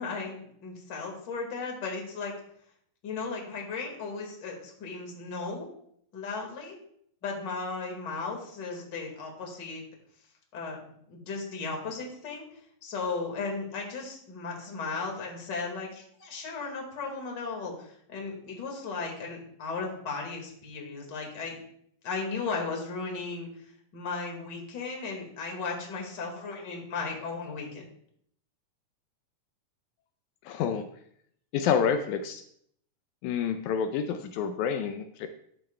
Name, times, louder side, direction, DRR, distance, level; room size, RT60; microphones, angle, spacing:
voice 1, 0.0-2.3 3.0-5.7 6.1-6.8 7.2-9.8 10.5-12.5 12.8-21.6 22.0-23.5 23.9-27.9, left 4 dB, 40° left, 1 dB, 2.1 m, -36 dB
voice 2, 30.4-30.9 31.5-32.4 33.2-35.3, left 7 dB, 85° left, 7 dB, 2.0 m, -28 dB
12.0 x 8.8 x 2.2 m, 0.67 s
omnidirectional pair, 3.4 m